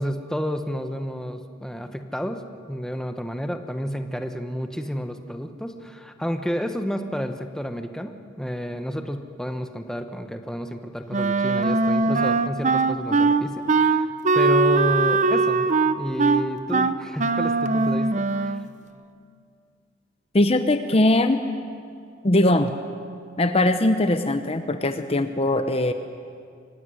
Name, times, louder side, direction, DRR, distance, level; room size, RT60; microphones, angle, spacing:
voice 1, 0.0-2.4 2.7-15.7 16.0-18.6, equal, 5° left, 6 dB, 1.0 m, -30 dB
Wind instrument woodwind instrument, 11.1-18.7, right 3 dB, 35° right, 0.7 m, -21 dB
voice 2, 20.3-21.4 22.2-22.7 23.4-25.9, left 1 dB, 30° left, 8 dB, 0.8 m, -20 dB
24.5 x 16.5 x 9.6 m, 2.3 s
head